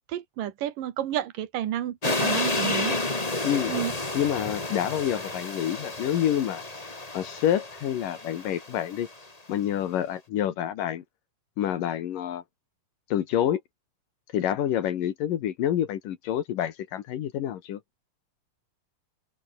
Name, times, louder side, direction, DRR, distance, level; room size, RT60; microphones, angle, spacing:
voice 1, 0.1-3.0 3.7-3.9, right 11 dB, 75° right, 3.3 m, -31 dB
sound 1, 2.0-9.1, left 2 dB, 15° left, 1.7 m, -31 dB
voice 2, 4.1-6.6 7.1-9.1 9.5-11.0 11.6-12.4 13.1-13.6 14.3-17.8, left 10 dB, 75° left, 3.2 m, -27 dB
open air
omnidirectional pair, 3.9 m